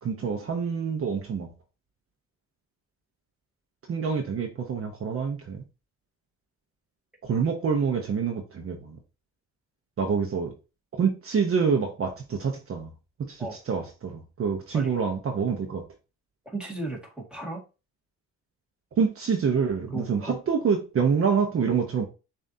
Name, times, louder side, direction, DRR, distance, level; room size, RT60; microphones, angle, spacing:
voice 1, 0.0-1.5 3.9-5.6 7.2-9.0 10.0-10.5 11.0-12.9 13.2-15.8 19.0-22.1, right 6 dB, 45° right, 0.9 m, -26 dB
voice 2, 16.4-17.6 19.9-20.4, right 2 dB, 5° right, 1.8 m, -35 dB
7.0 x 2.7 x 2.7 m
cardioid pair, 90°, 30 cm